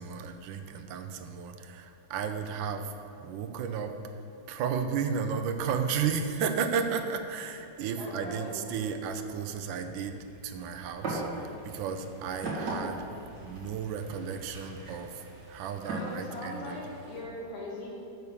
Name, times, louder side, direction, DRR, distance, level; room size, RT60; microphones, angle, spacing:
voice 1, 0.0-4.1 4.5-16.8, right 6 dB, 75° right, 7 dB, 1.3 m, -34 dB
sound 1, 3.0-17.2, right 1 dB, 45° right, 1.3 m, -54 dB
voice 2, 8.0-8.5 15.9-17.9, left 1 dB, 85° left, -5 dB, 2.7 m, -40 dB
sound 2, 11.0-11.3 11.6-16.1, right 2 dB, 60° right, 2.3 m, -37 dB
6.9 x 6.8 x 6.3 m, 2.7 s
omnidirectional pair, 2.1 m